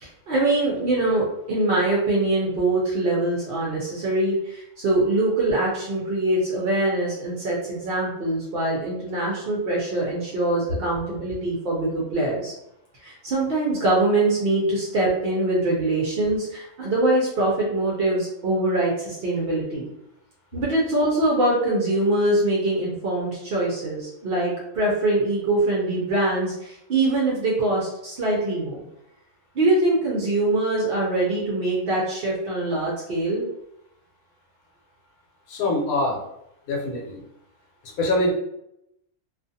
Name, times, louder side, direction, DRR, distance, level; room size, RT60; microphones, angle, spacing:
voice 1, 0.0-12.5 13.0-19.9 20.5-28.8 29.5-33.5, right 2 dB, 65° right, -3 dB, 0.6 m, -23 dB
voice 2, 35.5-36.2 36.7-37.2 38.0-38.3, left 2 dB, 70° left, -2 dB, 1.1 m, -24 dB
2.4 x 2.4 x 2.6 m, 0.81 s
omnidirectional pair, 1.6 m